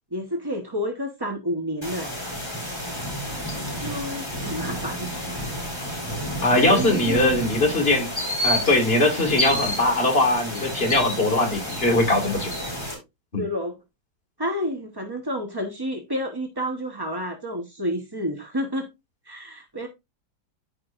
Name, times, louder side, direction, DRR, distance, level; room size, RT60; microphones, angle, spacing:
voice 1, 0.1-2.2 3.8-5.1 6.5-7.4 9.5-9.6 13.4-13.8 14.4-18.9 19.2-19.9, equal, 20° right, 0.6 m, -30 dB
sound 1, 1.8-12.9, equal, 15° left, 4.0 m, -30 dB
voice 2, 6.4-8.1 8.4-12.5 13.3-13.4, left 2 dB, 30° left, 2.2 m, -21 dB
14.0 x 4.9 x 2.5 m
omnidirectional pair, 2.1 m